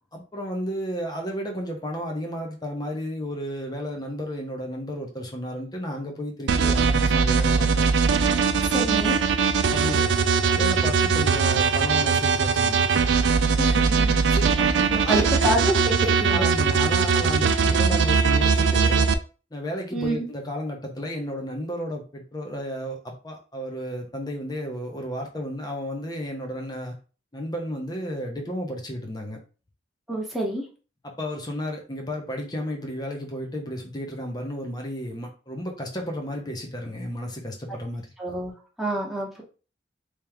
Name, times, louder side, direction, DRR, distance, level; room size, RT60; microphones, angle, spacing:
voice 1, 0.1-7.9 9.7-10.1 10.5-12.8 14.3-15.3 16.3-19.1 19.5-26.9 27.3-29.4 31.0-38.1, equal, 20° left, 2 dB, 0.9 m, -32 dB
sound 1, 6.5-19.1, right 5 dB, 75° right, 0.4 m, -21 dB
voice 2, 8.7-9.2 13.6-14.2 14.9-16.5 17.6-18.0 19.9-20.3 30.1-30.6 37.7-37.8 38.2-38.5 38.8-39.4, right 1 dB, ahead, -3 dB, 1.0 m, -27 dB
3.2 x 2.9 x 3.5 m, 0.35 s
head